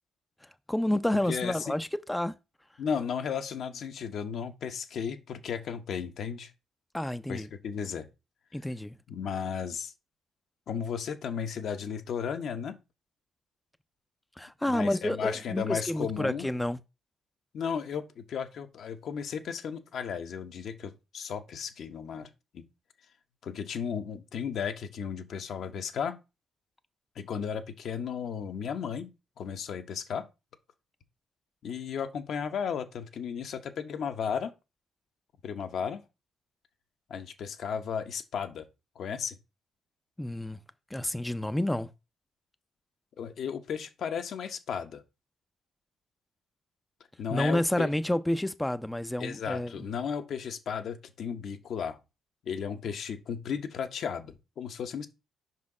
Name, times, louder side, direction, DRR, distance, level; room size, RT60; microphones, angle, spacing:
voice 1, 0.7-2.3 6.9-7.5 8.5-9.0 14.4-16.8 40.2-40.6 40.9-41.9 47.3-49.8, left 1 dB, 10° left, 0.4 m, -29 dB
voice 2, 1.3-1.7 2.8-6.5 7.3-8.1 9.1-9.9 10.7-12.8 14.7-16.5 17.5-22.3 22.5-22.6 23.4-26.2 27.2-29.1 29.4-30.3 31.6-34.5 35.4-36.0 37.1-38.7 39.0-39.4 43.2-45.0 47.2-47.9 49.2-52.0 52.5-55.1, left 7 dB, 65° left, 0.8 m, -34 dB
5.2 x 4.1 x 4.8 m
cardioid pair, 90°, 0 cm